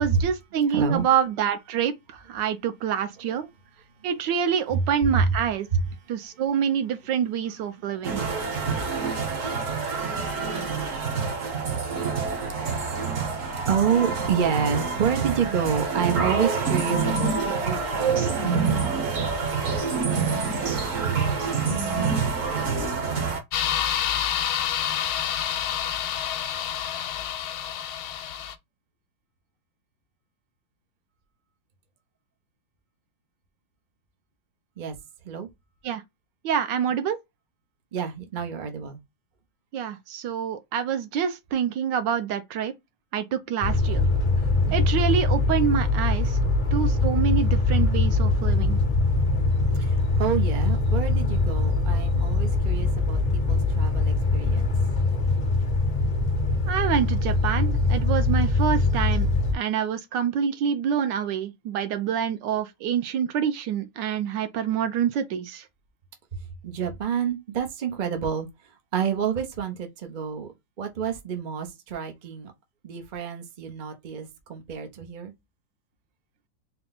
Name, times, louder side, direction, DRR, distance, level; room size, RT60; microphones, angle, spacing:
voice 1, 0.0-1.9 2.3-3.5 4.0-5.7 6.1-8.2 35.8-36.0 36.4-37.2 39.7-42.7 43.1-44.0 44.7-46.4 46.7-48.8 56.7-59.3 59.5-65.6, right 8 dB, 70° right, 1.2 m, -26 dB
voice 2, 0.7-1.1 3.3-3.4 5.1-5.3 5.7-5.8 7.9-8.3 9.7-9.8 10.5-10.6 11.9-12.0 12.6-12.7 13.7-18.9 34.8-35.0 35.2-35.5 37.9-39.0 44.7-44.9 49.8-54.7 66.6-68.5 68.9-72.5 72.8-75.3, right 7 dB, 90° right, 0.4 m, -29 dB
sound 1, 8.0-23.4, right 5 dB, 50° right, 1.1 m, -27 dB
sound 2, 23.5-28.5, left 10 dB, 85° left, 1.4 m, -28 dB
sound 3, 43.6-59.5, left 3 dB, 60° left, 0.4 m, -23 dB
4.3 x 2.2 x 3.9 m
omnidirectional pair, 2.3 m